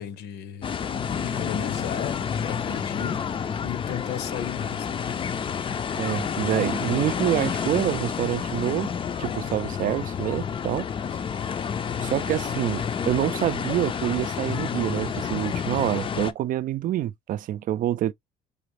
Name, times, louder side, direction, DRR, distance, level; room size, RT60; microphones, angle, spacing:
voice 1, 0.0-3.2 3.6-5.0, left 10 dB, 75° left, 0.9 m, -34 dB
sound 1, 0.6-16.3, left 7 dB, 30° left, 0.5 m, -29 dB
voice 2, 5.9-8.9 9.2-10.9 12.0-18.1, right 12 dB, 55° right, 0.4 m, -26 dB
4.8 x 2.5 x 3.2 m
cardioid pair, 110°, 17 cm